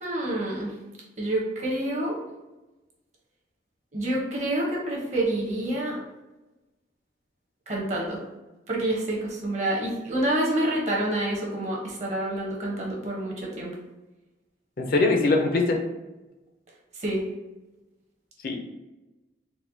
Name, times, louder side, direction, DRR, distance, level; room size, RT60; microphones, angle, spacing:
voice 1, 0.0-0.7 1.2-2.2 3.9-6.0 7.7-8.2 8.7-13.7 17.0-17.2, right 1 dB, 40° right, -3 dB, 0.8 m, -28 dB
voice 2, 14.8-15.8 18.4-18.5, left 3 dB, 55° left, 2 dB, 0.5 m, -22 dB
4.1 x 2.1 x 2.7 m, 1.1 s
head